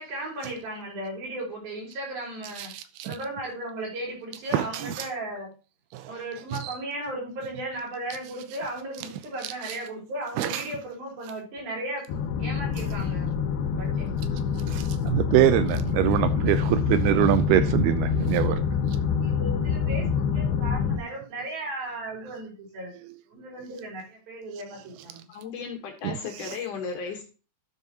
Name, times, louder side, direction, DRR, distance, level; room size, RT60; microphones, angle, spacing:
voice 1, 0.0-2.7 3.0-5.5 6.1-14.2 19.2-22.9 23.3-25.3, right 1 dB, 65° right, 6.5 m, -36 dB
voice 2, 2.7-3.1 4.5-4.9 5.9-6.1 6.6-6.7 10.4-10.6 14.7-18.6 26.0-26.1, right 12 dB, 90° right, 2.6 m, -24 dB
sound 1, 12.1-21.0, left 6 dB, 85° left, 3.0 m, -26 dB
voice 3, 25.3-27.2, left 6 dB, 60° left, 2.6 m, -35 dB
12.0 x 7.6 x 2.9 m
omnidirectional pair, 4.5 m